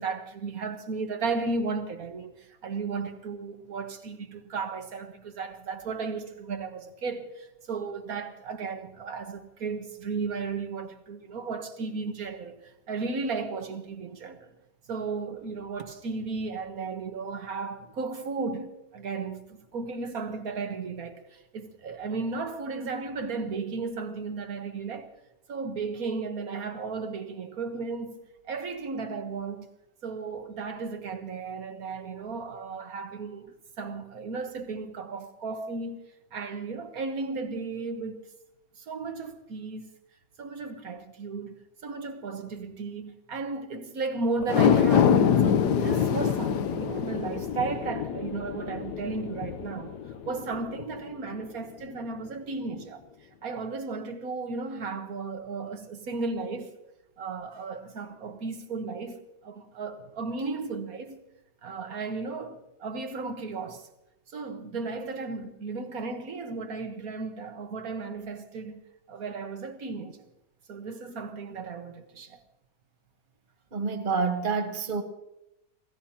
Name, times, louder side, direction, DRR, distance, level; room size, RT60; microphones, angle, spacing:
voice 1, 0.0-14.5 14.9-25.1 25.5-28.2 28.4-29.7 30.0-36.0 36.3-38.2 38.8-39.9 40.4-50.0 50.3-53.0 53.4-56.7 57.2-61.2 61.6-63.9 64.3-68.8 69.1-70.2 70.7-72.4, right 4 dB, 55° right, 1.7 m, -35 dB
sound 1, 44.4-50.9 51.3-51.4, left 8 dB, 70° left, 1.3 m, -25 dB
voice 2, 73.7-75.0, right 4 dB, 30° right, 1.4 m, -28 dB
27.5 x 16.5 x 2.9 m
omnidirectional pair, 1.9 m